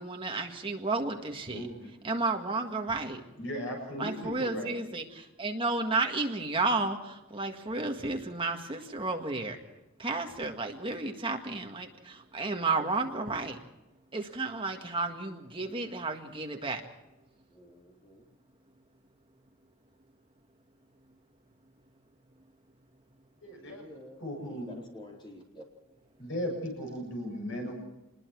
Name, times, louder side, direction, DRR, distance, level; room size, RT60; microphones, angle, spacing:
voice 1, 0.0-1.6 2.0-3.2 4.0-9.6 10.0-13.6 14.1-16.8, right 3 dB, 25° right, 3 dB, 1.8 m, -32 dB
voice 2, 1.5-1.9 3.4-4.7 23.4-23.8 24.2-24.8 26.2-27.7, equal, 60° left, 1 dB, 7.4 m, -36 dB
voice 3, 17.5-18.3 23.5-25.6, left 1 dB, 20° left, -1 dB, 4.4 m, -50 dB
26.5 x 21.0 x 4.7 m, 0.97 s
head